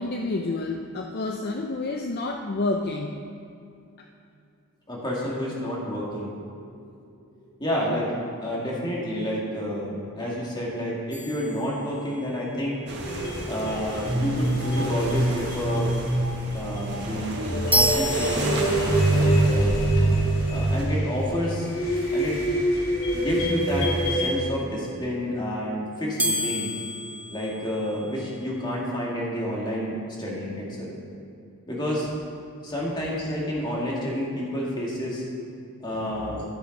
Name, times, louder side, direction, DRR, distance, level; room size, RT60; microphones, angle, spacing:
voice 1, 0.0-3.2 36.0-36.4, left 2 dB, 45° left, 3 dB, 0.5 m, -29 dB
voice 2, 4.9-6.3 6.7-6.9 7.4-8.1 8.4-12.8 13.5-16.0 16.5-19.7 20.5-21.7 22.1-22.4 23.1-26.7 27.3-30.9 31.7-32.1 32.6-35.2 35.8-36.4, equal, 20° left, -5 dB, 2.1 m, -29 dB
sound 1, 11.1-12.4 17.7-19.2 26.2-28.3, equal, 5° right, 0.5 m, -29 dB
sound 2, 12.9-20.9, right 1 dB, 50° right, 1.2 m, -34 dB
sound 3, 13.0-24.3, right 1 dB, 70° left, 3.0 m, -25 dB
12.5 x 6.9 x 5.3 m, 2.5 s
head